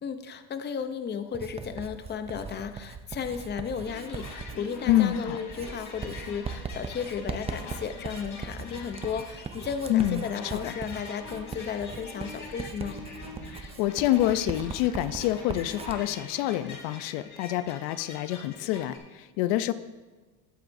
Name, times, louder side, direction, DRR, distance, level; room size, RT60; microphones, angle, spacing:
voice 1, 0.0-13.0, left 7 dB, 25° left, 9 dB, 0.7 m, -34 dB
Writing, 1.3-16.0, right 5 dB, 15° right, 0.4 m, -40 dB
sound 1, 3.8-19.0, left 3 dB, 40° left, 3.3 m, -44 dB
voice 2, 4.9-5.4 9.9-10.2 10.5-10.7 13.5-19.7, left 13 dB, 75° left, 13 dB, 0.7 m, -27 dB
20.0 x 7.8 x 2.6 m, 1.3 s
cardioid pair, 125°, 46 cm